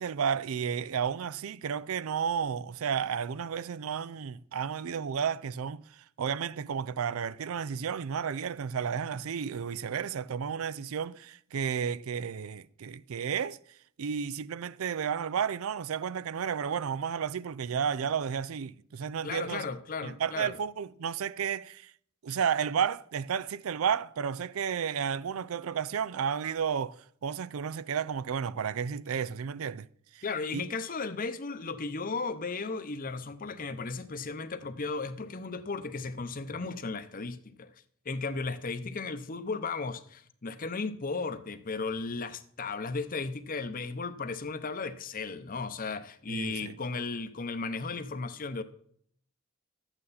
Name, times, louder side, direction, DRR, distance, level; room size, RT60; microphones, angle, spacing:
voice 1, 0.0-5.8 6.2-13.6 14.0-19.6 20.0-21.9 22.2-29.9 30.1-30.2 30.5-30.6 46.3-46.8, right 7 dB, 80° right, 0.4 m, -32 dB
voice 2, 19.2-20.6 30.2-37.7 38.0-48.6, left 4 dB, 40° left, 0.8 m, -35 dB
12.5 x 8.9 x 4.1 m
head